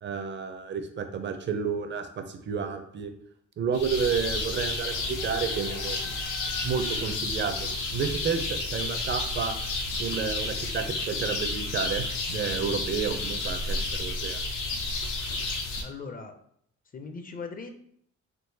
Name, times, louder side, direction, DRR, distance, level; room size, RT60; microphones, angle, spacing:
voice 1, 0.0-3.1 3.6-6.1 6.6-9.6 10.0-14.4, right 6 dB, 40° right, 8 dB, 0.5 m, -31 dB
sound 1, 3.7-15.8, left 2 dB, 85° left, 0.6 m, -31 dB
voice 2, 15.8-16.3 16.9-17.7, left 4 dB, 30° left, 5 dB, 0.4 m, -39 dB
3.7 x 2.4 x 2.7 m, 0.68 s
cardioid pair, 90°, 30 cm